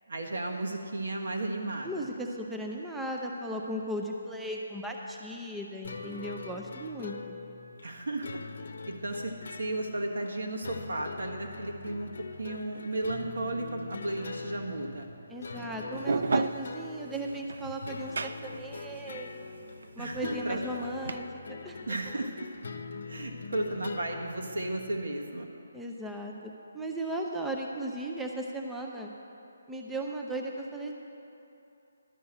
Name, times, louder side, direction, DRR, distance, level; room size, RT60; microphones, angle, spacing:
voice 1, 0.1-2.0 7.8-8.3 8.9-12.1 12.4-15.1 20.0-20.6 21.9-22.5 23.1-25.5, right 2 dB, 80° right, 1 dB, 1.6 m, -34 dB
voice 2, 1.8-7.4 15.3-19.5 19.9-21.8 25.7-29.1 29.7-30.9, right 1 dB, 5° right, 0 dB, 0.4 m, -36 dB
sound 1, 5.8-25.0, left 4 dB, 60° left, 0.7 m, -43 dB
sound 2, 15.9-21.2, right 4 dB, 65° right, 0.4 m, -33 dB
12.0 x 5.6 x 8.8 m, 2.8 s
hypercardioid pair, 175°, 0 cm